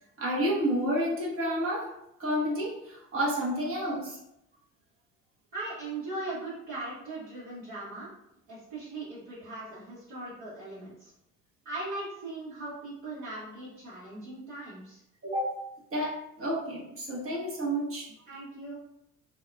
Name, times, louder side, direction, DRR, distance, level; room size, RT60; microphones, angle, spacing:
voice 1, 0.2-1.9 2.2-4.2 15.2-15.6 15.9-18.1, equal, 35° right, -4 dB, 1.1 m, -30 dB
voice 2, 5.5-8.1 8.5-11.1 11.6-15.0 18.1-18.8, right 2 dB, 55° right, -11 dB, 1.4 m, -39 dB
2.7 x 2.3 x 2.5 m, 0.82 s
hypercardioid pair, 60°, 39 cm